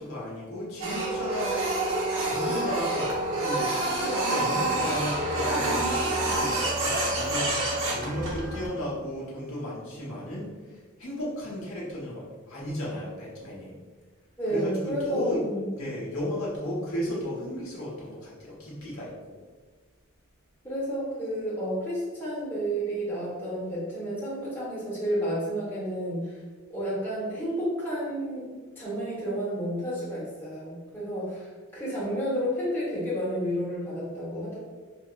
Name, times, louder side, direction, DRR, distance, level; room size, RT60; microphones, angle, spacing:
voice 1, 0.0-1.5 2.2-3.1 3.4-10.5 11.0-13.7 14.5-15.4 15.7-19.4, equal, 75° left, -6 dB, 1.2 m, -34 dB
Printer, 0.8-8.7, right 2 dB, 70° right, 1.0 m, -27 dB
voice 2, 14.4-15.7 20.6-26.3 26.7-34.6, equal, 10° left, -9 dB, 1.4 m, -31 dB
5.0 x 2.8 x 2.4 m, 1.4 s
head